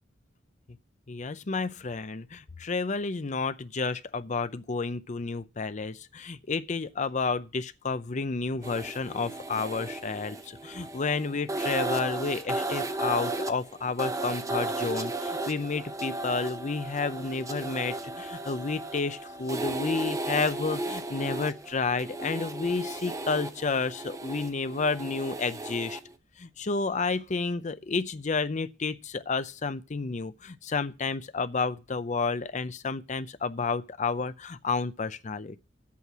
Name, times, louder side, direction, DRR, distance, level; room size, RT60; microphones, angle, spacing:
voice 1, 1.1-26.0 26.4-35.6, left 4 dB, 40° left, 0.6 m, -31 dB
sound 1, 8.6-26.1, right 2 dB, 20° right, 0.7 m, -35 dB
8.5 x 7.8 x 6.0 m
head